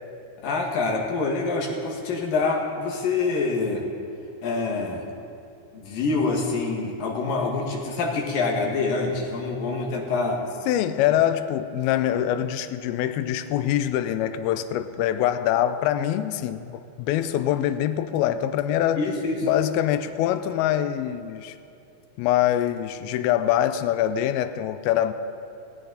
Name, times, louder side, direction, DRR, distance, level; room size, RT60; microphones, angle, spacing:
voice 1, 0.4-3.8 4.4-5.0 5.7-10.4 19.0-19.5, left 3 dB, 65° left, 0 dB, 3.2 m, -26 dB
voice 2, 10.7-19.1 19.4-21.6 22.2-25.1, left 11 dB, 85° left, 10 dB, 2.5 m, -24 dB
20.5 x 17.0 x 4.0 m, 2.7 s
omnidirectional pair, 4.4 m